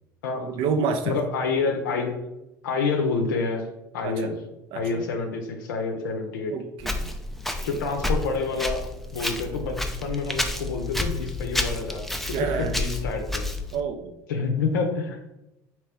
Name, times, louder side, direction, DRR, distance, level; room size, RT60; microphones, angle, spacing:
voice 1, 0.4-1.2 4.0-4.3 4.7-4.9 6.5-7.1 7.7-7.8 12.3-12.8 13.7-14.1, right 5 dB, 60° right, 7 dB, 0.5 m, -28 dB
voice 2, 1.1-2.2 2.6-3.7 3.9-4.3 4.7-6.5 7.6-8.8 9.1-13.5 14.3-15.2, left 4 dB, 85° left, 3 dB, 0.6 m, -28 dB
Walk footsteps, 6.8-13.8, left 2 dB, ahead, 0.4 m, -30 dB
3.1 x 2.9 x 3.4 m, 0.94 s
hypercardioid pair, 75°, 10 cm